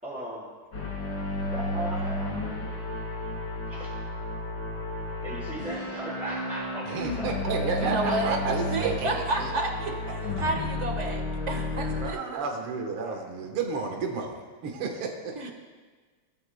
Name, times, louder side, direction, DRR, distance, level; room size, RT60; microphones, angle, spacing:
voice 1, 0.0-0.5 1.4-2.4 3.6-4.0 5.2-7.3 7.8-8.2 8.8-8.9 13.0-13.2, right 1 dB, 5° right, -11 dB, 3.7 m, -37 dB
sound 1, 0.7-12.1, left 2 dB, 60° left, 3.1 m, -32 dB
voice 2, 6.9-9.7 11.9-15.3, right 4 dB, 75° right, 2 dB, 2.1 m, -32 dB
voice 3, 7.7-12.2 15.3-15.5, right 3 dB, 35° right, 3 dB, 1.4 m, -31 dB
19.5 x 13.5 x 2.2 m, 1.4 s
omnidirectional pair, 2.4 m